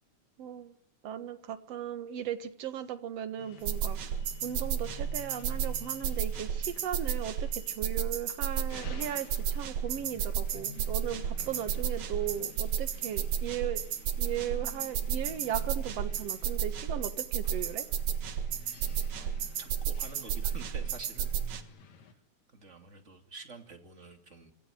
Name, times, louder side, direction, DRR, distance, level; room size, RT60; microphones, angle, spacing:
voice 1, 0.4-0.8 1.0-4.0 4.4-13.8 14.2-17.8, right 9 dB, 60° right, 9 dB, 2.5 m, -37 dB
sound 1, 3.4-22.1, left 6 dB, 70° left, 3.1 m, -52 dB
sound 2, 3.7-21.6, right 8 dB, 75° right, 2.9 m, -32 dB
voice 2, 11.4-11.9 12.6-12.7 18.8-19.3 19.6-21.4 21.9-22.2 22.5-24.5, right 3 dB, 25° right, 4 dB, 2.7 m, -49 dB
27.0 x 17.0 x 9.3 m, 0.70 s
omnidirectional pair, 3.4 m